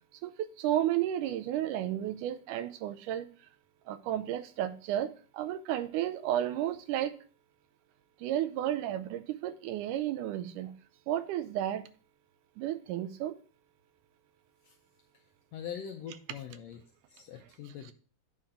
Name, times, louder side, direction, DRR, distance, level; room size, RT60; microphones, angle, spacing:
voice 1, 0.2-3.3 3.9-7.2 8.2-10.7 11.1-11.9 12.6-13.3, right 12 dB, 90° right, 2.1 m, -32 dB
voice 2, 15.5-16.8 17.1-17.9, left 8 dB, 80° left, 1.5 m, -42 dB
8.7 x 3.8 x 4.1 m
omnidirectional pair, 3.6 m